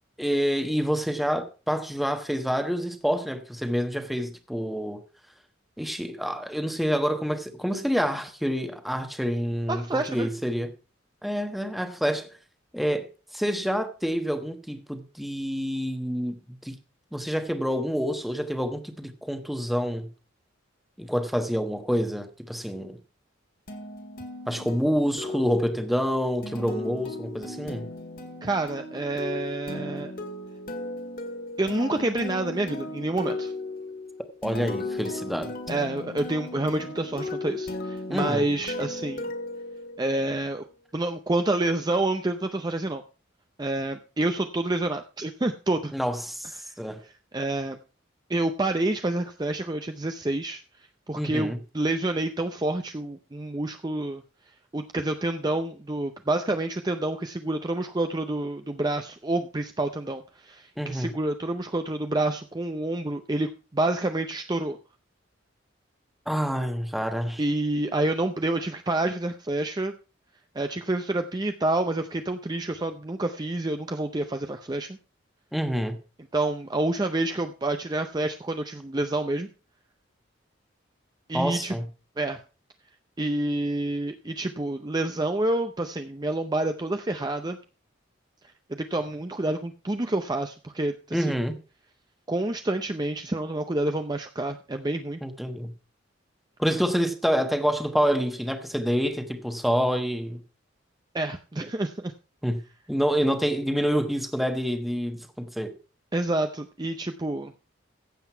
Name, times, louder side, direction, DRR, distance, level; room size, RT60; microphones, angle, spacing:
voice 1, 0.2-5.0 5.8-10.7 11.2-12.3 12.7-16.8 17.1-20.1 21.0-23.0 24.5-27.9 34.4-35.5 38.1-38.5 45.9-47.0 51.1-51.6 60.8-61.1 66.3-67.4 75.5-76.0 81.3-81.9 91.1-91.6 95.2-95.7 96.6-100.4 102.4-105.7, equal, ahead, 1.1 m, -27 dB
voice 2, 9.7-10.3 28.4-30.1 31.6-33.5 35.7-39.3 40.0-40.7 40.9-43.0 43.6-45.9 46.6-46.7 47.0-47.8 48.3-50.6 51.1-54.2 54.7-64.8 67.4-69.9 70.5-75.0 76.3-79.5 81.3-81.8 82.2-82.4 83.2-87.6 88.7-91.3 92.3-95.2 101.1-102.1 106.1-107.5, right 2 dB, 20° right, 0.6 m, -28 dB
sound 1, 23.7-40.4, left 2 dB, 50° left, 1.9 m, -36 dB
15.0 x 7.9 x 4.5 m
head